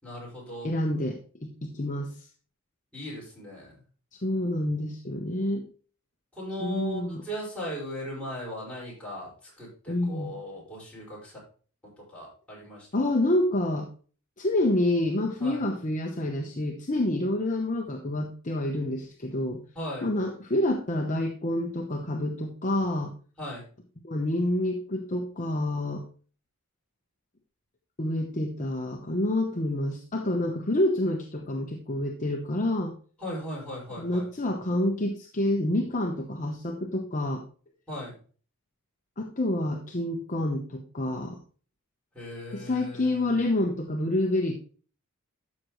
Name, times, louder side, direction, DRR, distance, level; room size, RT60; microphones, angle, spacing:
voice 1, 0.0-0.7 2.9-3.7 6.4-11.4 12.1-13.0 15.4-15.6 19.8-20.1 23.4-23.6 33.2-34.2 37.9-38.1 42.1-43.4, equal, 5° left, -7 dB, 5.3 m, -38 dB
voice 2, 0.6-2.3 4.2-5.7 6.6-7.2 9.9-10.3 12.9-13.9 14.4-19.6 20.0-23.1 24.0-26.0 28.0-32.9 34.0-37.4 39.2-41.4 42.5-44.5, left 1 dB, 35° left, 2 dB, 0.9 m, -28 dB
12.5 x 6.5 x 3.1 m, 0.41 s
head